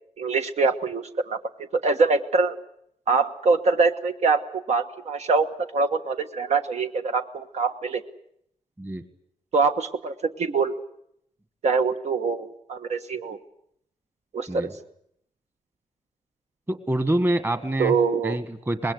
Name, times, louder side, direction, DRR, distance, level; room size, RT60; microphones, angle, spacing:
voice 1, 0.2-1.4 1.8-2.6 3.1-5.5 5.7-8.0 9.5-10.1 10.4-10.7 11.6-13.4 14.3-14.7 17.8-18.4, right 4 dB, 60° right, 7 dB, 1.4 m, -24 dB
voice 2, 16.7-17.9 18.2-18.9, right 1 dB, 15° right, 10 dB, 1.7 m, -26 dB
25.0 x 21.0 x 8.2 m, 0.72 s
wide cardioid pair, 170°, 13 cm